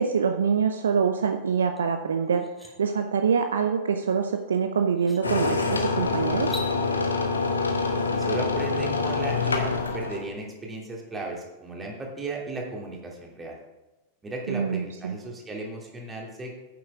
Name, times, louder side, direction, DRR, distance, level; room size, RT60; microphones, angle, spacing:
voice 1, 0.0-6.6 14.5-15.2, right 6 dB, 65° right, 7 dB, 0.6 m, -25 dB
sound 1, 1.8-1.9 2.3-2.7 4.4-4.5 5.0-5.2 6.4-6.7, left 1 dB, ahead, 1.9 m, -39 dB
sound 2, 5.2-10.2, left 4 dB, 75° left, 1.1 m, -26 dB
voice 2, 8.1-13.6 14.2-16.6, right 2 dB, 15° right, -1 dB, 2.7 m, -35 dB
9.5 x 7.5 x 4.8 m, 1.0 s
figure-of-eight pair, 90°, 0 cm